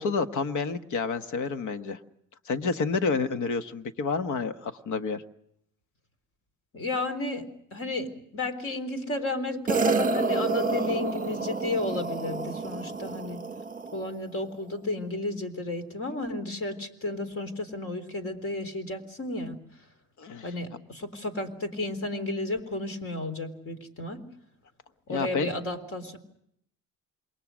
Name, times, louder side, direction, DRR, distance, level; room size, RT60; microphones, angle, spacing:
voice 1, 0.0-2.0 2.4-5.2 20.2-20.5 25.1-25.5, left 4 dB, 60° left, 9 dB, 1.4 m, -29 dB
voice 2, 6.7-7.5 7.7-13.4 13.9-19.6 20.4-24.2 25.1-26.2, left 2 dB, 40° left, 9 dB, 3.8 m, -33 dB
sound 1, 9.7-14.1, right 4 dB, 25° right, 1.6 m, -29 dB
28.0 x 22.5 x 6.3 m, 0.73 s
cardioid pair, 125°, 34 cm